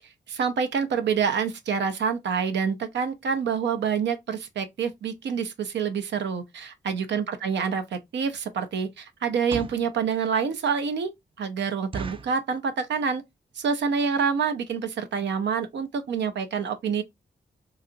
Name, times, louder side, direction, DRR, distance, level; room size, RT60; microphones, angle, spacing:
voice 1, 0.3-11.1 11.4-13.2 13.6-17.0, right 6 dB, 85° right, 0.5 m, -27 dB
sound 1, 7.7-7.8 8.3-8.6 9.3-9.9 10.5-10.6 10.9-11.0 11.3-11.4 11.9-12.4 13.0-13.3 13.6-13.7 13.9-14.2 14.7-14.8 15.0-15.2 15.6-15.7 15.9-16.0, right 5 dB, 30° right, 0.3 m, -37 dB
2.8 x 2.4 x 2.4 m
cardioid pair, 50°, 18 cm